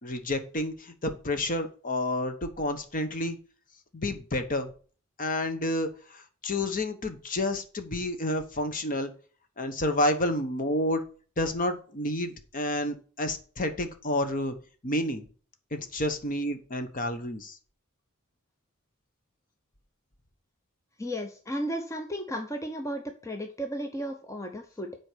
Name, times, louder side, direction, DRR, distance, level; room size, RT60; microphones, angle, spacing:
voice 1, 0.0-3.4 3.9-4.7 5.2-9.1 9.6-11.0 11.4-14.5 14.8-15.3 15.7-17.6, left 1 dB, 40° left, 7 dB, 1.1 m, -30 dB
voice 2, 21.0-25.0, equal, 15° left, 4 dB, 0.7 m, -34 dB
7.8 x 4.6 x 6.2 m, 0.39 s
head